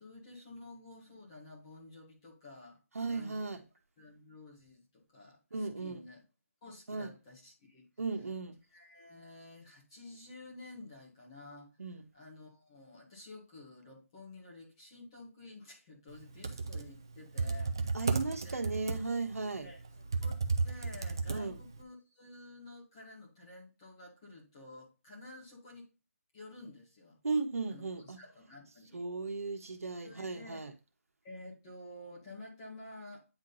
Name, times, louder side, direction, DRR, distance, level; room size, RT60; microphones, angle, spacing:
voice 1, 0.0-2.8 3.0-3.4 4.0-6.2 6.6-7.8 8.7-11.8 12.1-18.1 18.4-18.6 19.6-25.9 26.3-27.2 27.7-29.0 30.0-30.7 31.2-33.3, left 2 dB, 15° left, 1.7 m, -51 dB
voice 2, 2.9-3.6 5.5-6.0 6.9-7.1 8.0-8.6 11.8-12.0 17.9-19.7 21.3-21.6 27.2-28.2 28.9-30.7, right 3 dB, 75° right, 1.3 m, -36 dB
Computer keyboard, 16.2-21.8, right 4 dB, 15° right, 0.3 m, -34 dB
9.0 x 3.7 x 4.0 m
hypercardioid pair, 180°, 8 cm